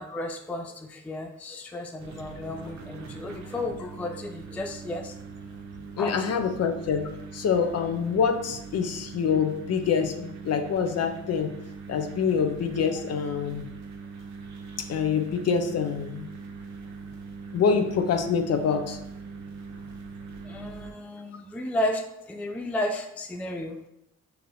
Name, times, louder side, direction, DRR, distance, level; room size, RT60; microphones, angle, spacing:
voice 1, 0.0-5.2 6.0-6.1 20.4-23.8, left 1 dB, 5° left, 4 dB, 0.3 m, -33 dB
sound 1, 2.0-20.9, right 5 dB, 65° right, 0.7 m, -42 dB
voice 2, 6.0-11.5 11.9-13.6 14.9-16.3 17.5-19.0, left 6 dB, 55° left, 6 dB, 0.6 m, -26 dB
5.6 x 2.8 x 2.6 m, 0.81 s
cardioid pair, 90°, 30 cm